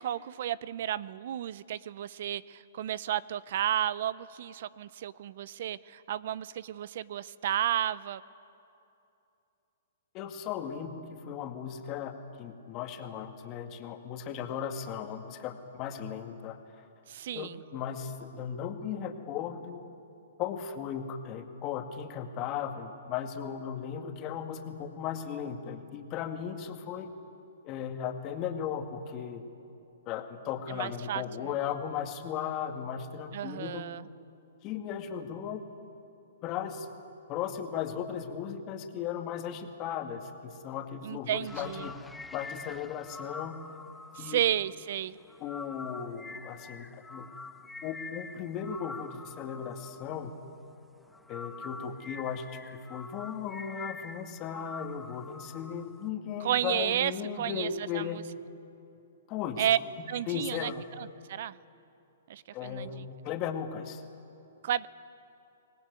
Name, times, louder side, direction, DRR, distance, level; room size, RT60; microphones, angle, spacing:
voice 1, 0.0-8.2 17.1-17.6 30.7-31.2 33.3-34.0 41.0-41.9 44.2-45.2 56.4-57.1 57.4-57.7 57.9-58.2 59.6-59.8 60.1-60.7 61.0-61.6 62.3-63.1 64.6-64.9, right 11 dB, 60° right, 19 dB, 0.6 m, -32 dB
voice 2, 10.1-16.8 17.3-19.9 20.4-27.1 27.6-29.4 30.1-33.8 34.6-35.6 36.4-36.9 37.3-43.6 44.2-44.4 45.4-47.3 47.8-50.3 51.3-52.6 52.9-58.2 59.3-59.6 60.3-60.8 62.5-64.0, left 8 dB, 35° left, 5 dB, 2.1 m, -36 dB
sound 1, 41.5-50.7 51.0-56.1, left 3 dB, 5° left, 0.6 m, -46 dB
24.5 x 19.0 x 9.6 m, 2.7 s
hypercardioid pair, 135°, 0 cm